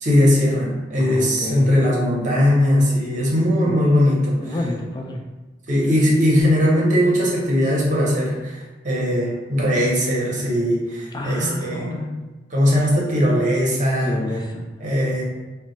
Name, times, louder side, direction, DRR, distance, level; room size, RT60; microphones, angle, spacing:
voice 1, 0.0-4.4 5.7-11.9 12.5-14.2 14.8-15.2, equal, 45° right, -4 dB, 0.7 m, -19 dB
voice 2, 1.0-1.7 3.6-3.9 4.4-5.2 11.1-12.1 14.0-14.6, left 1 dB, 25° left, 0 dB, 0.3 m, -29 dB
2.1 x 2.1 x 3.8 m, 1.2 s
head